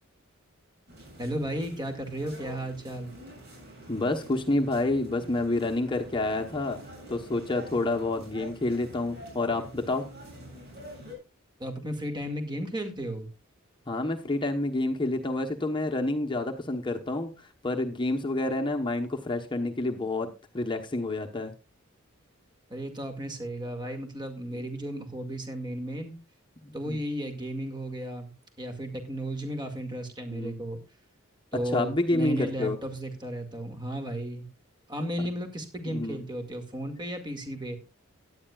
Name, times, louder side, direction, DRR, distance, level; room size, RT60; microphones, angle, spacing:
sound 1, 0.9-11.1, equal, 50° right, 7.5 m, -46 dB
voice 1, 1.2-3.1 11.6-13.3 22.7-26.1 26.7-28.3 28.6-30.8 31.5-34.5 34.9-37.8, right 1 dB, 20° right, 6 dB, 2.0 m, -34 dB
voice 2, 3.9-6.8 7.1-10.1 13.9-17.3 17.6-21.5 26.6-27.0 30.3-30.5 31.5-32.8 35.9-36.2, left 2 dB, 25° left, 3 dB, 1.0 m, -28 dB
16.5 x 11.0 x 2.4 m, 0.28 s
head